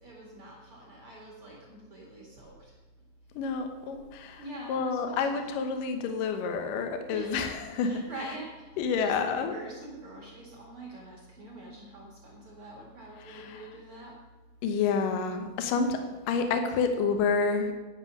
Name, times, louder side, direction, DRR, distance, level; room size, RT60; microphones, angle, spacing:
voice 1, 0.0-2.7 4.4-5.6 7.1-7.3 7.8-14.1 15.7-16.5, right 1 dB, 45° right, -3 dB, 2.0 m, -45 dB
voice 2, 3.4-4.4 4.7-8.0 8.8-9.5 13.3-13.7 14.6-16.0 16.3-17.7, left 5 dB, 70° left, 6 dB, 2.2 m, -29 dB
10.5 x 8.3 x 6.2 m, 1.3 s
omnidirectional pair, 5.0 m